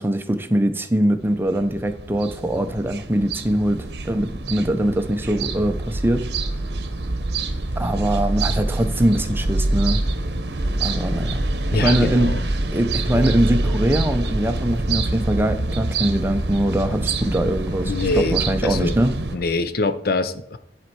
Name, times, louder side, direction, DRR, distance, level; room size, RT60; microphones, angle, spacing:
voice 1, 0.0-6.3 7.8-10.0 10.8-11.4 11.7-12.3 12.7-19.1, right 1 dB, 10° right, 8 dB, 0.6 m, -22 dB
sound 1, 1.2-19.4, right 2 dB, 65° right, 0.9 m, -26 dB
sound 2, 6.9-19.5, right 1 dB, 85° left, 2.1 m, -37 dB
voice 2, 11.7-12.4 17.8-18.4 18.6-19.0 19.3-20.6, left 3 dB, 55° left, 11 dB, 0.6 m, -24 dB
10.5 x 4.3 x 4.7 m, 0.74 s
head